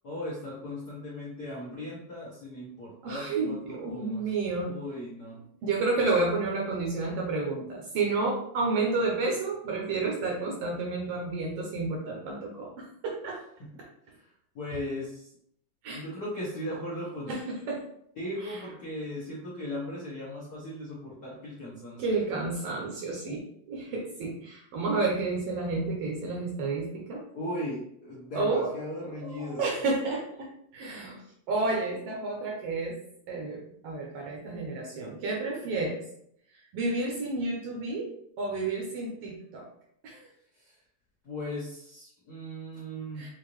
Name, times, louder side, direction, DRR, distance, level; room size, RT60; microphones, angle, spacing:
voice 1, 0.0-4.3 4.6-5.4 14.1-15.3 15.9-17.3 18.2-22.2 27.3-29.7 40.5-40.8 41.2-43.3, left 1 dB, 75° left, -7 dB, 0.8 m, -38 dB
voice 2, 3.0-4.7 5.6-13.4 15.8-16.0 17.3-17.8 18.4-18.6 22.0-27.2 28.3-28.7 29.2-31.2 31.5-33.0 33.3-36.0 36.7-38.1 38.4-39.7 40.0-40.3 43.2-43.3, right 3 dB, 70° right, -1 dB, 1.5 m, -30 dB
5.6 x 2.6 x 3.1 m, 0.70 s
omnidirectional pair, 3.4 m